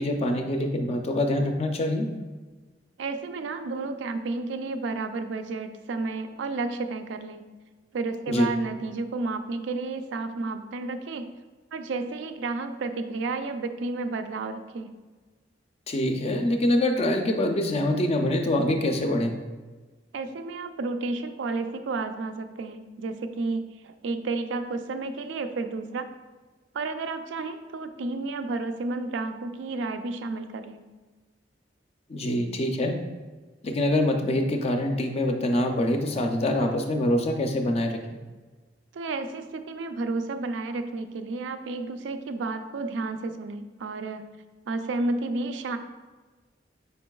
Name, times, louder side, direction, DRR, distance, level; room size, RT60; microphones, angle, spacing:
voice 1, 0.0-2.1 8.3-8.5 15.9-19.4 32.1-33.0 33.6-38.0, left 1 dB, 35° left, 4 dB, 0.4 m, -25 dB
voice 2, 3.0-7.4 7.9-11.3 11.7-14.9 20.1-26.1 26.7-30.8 38.9-44.2 44.7-45.8, right 3 dB, 85° right, 8 dB, 0.4 m, -31 dB
5.2 x 4.5 x 2.3 m, 1.3 s
head